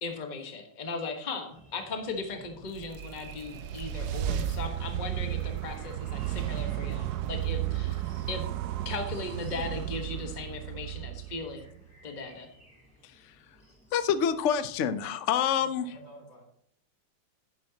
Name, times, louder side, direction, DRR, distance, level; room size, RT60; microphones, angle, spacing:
voice 1, 0.0-8.5 8.8-12.5, left 3 dB, 25° left, 4 dB, 1.2 m, -38 dB
sound 1, 1.5-15.1, right 1 dB, 5° left, 4.0 m, -57 dB
sound 2, 2.5-11.8, right 12 dB, 70° right, 1.1 m, -33 dB
voice 2, 13.9-15.9, left 8 dB, 70° left, 12 dB, 0.7 m, -27 dB
voice 3, 15.4-16.4, right 1 dB, 90° left, -2 dB, 5.0 m, -52 dB
10.5 x 10.5 x 2.8 m, 0.66 s
omnidirectional pair, 2.0 m